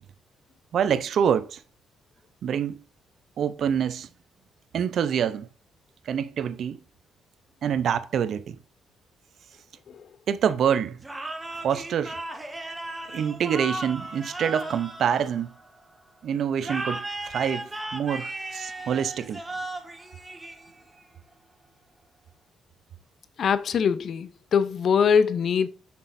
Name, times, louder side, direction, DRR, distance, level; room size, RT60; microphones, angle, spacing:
voice 1, 0.7-1.6 2.4-2.8 3.4-4.1 4.7-5.5 6.1-6.8 7.6-8.6 10.3-11.0 11.6-12.2 13.1-15.5 16.2-19.4, right 8 dB, 65° right, 0.6 m, -26 dB
sound 1, 11.0-15.8 16.6-21.0, right 2 dB, 15° right, 1.3 m, -36 dB
voice 2, 23.4-25.7, left 6 dB, 60° left, 0.6 m, -22 dB
7.1 x 6.0 x 2.6 m
cardioid pair, 90°, 0 cm